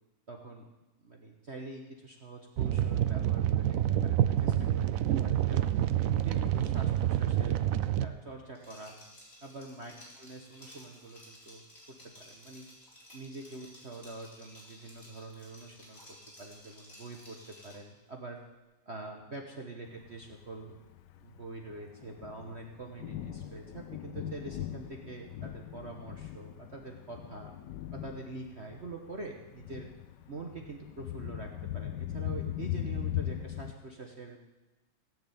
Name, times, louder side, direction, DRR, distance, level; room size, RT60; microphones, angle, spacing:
voice 1, 0.3-0.7 1.0-5.8 6.2-7.6 8.0-8.9 9.4-11.6 12.0-12.6 13.1-18.4 18.9-20.8 21.2-27.5 27.9-29.9 30.3-34.4, right 3 dB, 40° right, 2 dB, 1.3 m, -45 dB
sound 1, 2.6-8.1, right 11 dB, 85° right, 0.7 m, -28 dB
Liquid, 8.6-17.9, left 1 dB, 30° left, 4.6 m, -54 dB
Thunder, 20.1-33.7, left 13 dB, 70° left, 1.2 m, -40 dB
17.0 x 6.7 x 8.7 m, 1.1 s
omnidirectional pair, 2.1 m